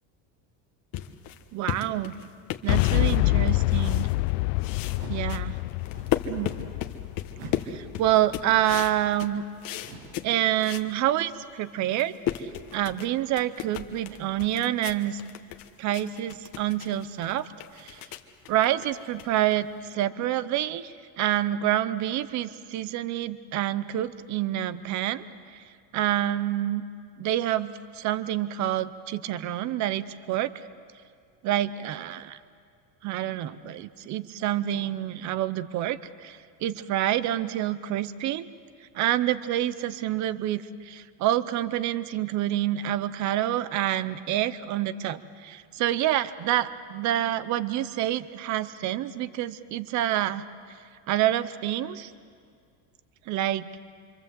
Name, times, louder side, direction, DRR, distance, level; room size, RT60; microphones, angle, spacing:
sound 1, 0.9-4.3 4.6-10.9 11.3-11.4 11.8-19.9, left 11 dB, 45° left, 1.3 m, -36 dB
voice 1, 1.5-2.1 2.6-4.1 5.1-5.6 6.3-6.5 7.7-9.4 10.2-15.2 15.8-17.5 17.8-18.0 18.5-25.6 25.9-26.8 27.2-30.5 31.4-32.4 33.0-38.5 38.9-50.4 51.1-52.1 53.3-53.7, right 12 dB, 35° right, 15 dB, 0.7 m, -27 dB
Boom, 2.7-8.6, left 22 dB, 80° left, 0.7 m, -26 dB
sound 2, 4.9-5.4 5.8-6.3 7.3-7.7 8.6-9.0 9.8-10.2, right 3 dB, 85° right, 6.1 m, -44 dB
27.0 x 25.0 x 7.6 m, 2.2 s
cardioid pair, 160°, 49 cm